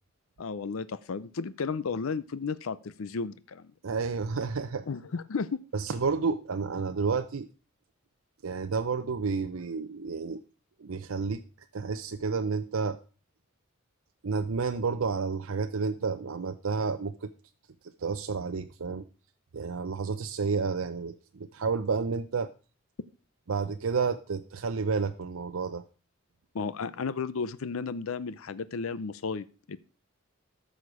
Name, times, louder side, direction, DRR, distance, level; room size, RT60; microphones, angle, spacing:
voice 1, 0.4-3.7 4.9-5.6 26.5-29.8, left 5 dB, 85° left, 16 dB, 0.6 m, -33 dB
voice 2, 3.8-4.8 5.7-7.5 8.4-10.4 10.8-11.4 11.7-13.0 14.2-17.3 18.0-19.0 19.5-22.5 23.5-25.8, right 5 dB, 85° right, 7 dB, 0.6 m, -30 dB
13.5 x 6.5 x 4.9 m, 0.37 s
head